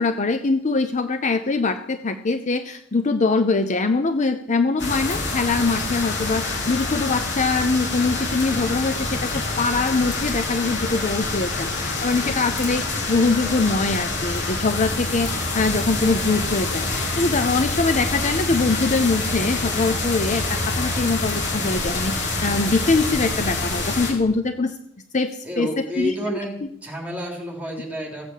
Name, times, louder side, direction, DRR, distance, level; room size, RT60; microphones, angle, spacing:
voice 1, 0.0-24.8 25.1-25.7 26.0-26.7, left 3 dB, 35° left, 9 dB, 0.6 m, -23 dB
sound 1, 4.8-24.1, left 2 dB, 55° left, 3.5 m, -26 dB
voice 2, 25.4-28.3, left 1 dB, 5° right, 0 dB, 3.4 m, -30 dB
15.5 x 8.2 x 7.3 m, 0.77 s
head